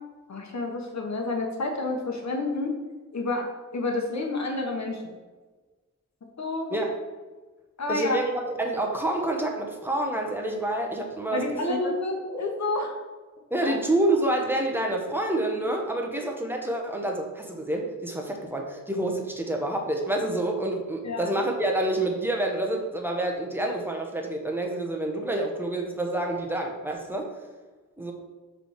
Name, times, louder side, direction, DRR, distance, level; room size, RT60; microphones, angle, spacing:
voice 1, 0.3-2.7 3.1-5.1 6.4-6.7 7.8-8.2 11.3-12.9 13.6-13.7 21.0-21.3, left 2 dB, 60° left, 2 dB, 1.1 m, -29 dB
voice 2, 7.9-11.4 11.7-11.8 13.5-27.3 28.0-28.1, right 1 dB, 5° right, 1 dB, 0.9 m, -28 dB
5.8 x 3.4 x 5.7 m, 1.3 s
wide cardioid pair, 125°, 30 cm